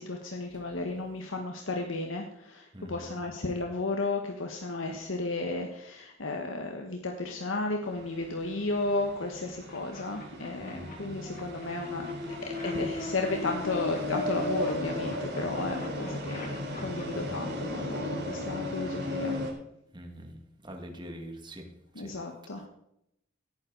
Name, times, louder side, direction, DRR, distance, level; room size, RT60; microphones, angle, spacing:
voice 1, 0.0-12.1 12.6-19.4 21.9-22.6, left 2 dB, 85° left, 2 dB, 1.4 m, -34 dB
voice 2, 2.7-3.2 10.6-11.0 17.1-17.4 19.9-20.4 20.6-22.1, equal, 25° right, 3 dB, 2.1 m, -44 dB
sound 1, 7.8-19.5, left 1 dB, 60° right, 4.0 m, -35 dB
sound 2, 9.7-10.9 11.3-14.7 15.0-17.0, left 3 dB, 45° left, 2.9 m, -49 dB
17.0 x 9.6 x 4.0 m, 0.78 s
head